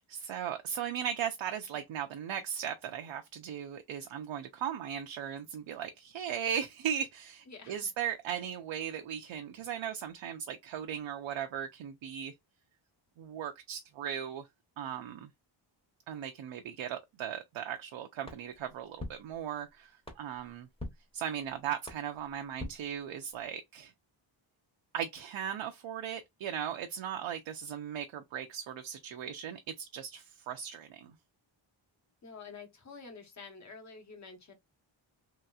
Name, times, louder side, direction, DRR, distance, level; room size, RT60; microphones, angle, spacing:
voice 1, 0.1-12.3 13.2-14.5 14.8-15.3 16.1-20.7 21.1-23.9 24.9-31.1, right 9 dB, 75° right, 0.6 m, -37 dB
voice 2, 7.5-7.9 32.2-34.5, left 4 dB, 35° left, 1.0 m, -49 dB
sound 1, 18.2-23.6, left 1 dB, 10° left, 0.9 m, -48 dB
3.1 x 2.9 x 2.3 m
wide cardioid pair, 160°, 47 cm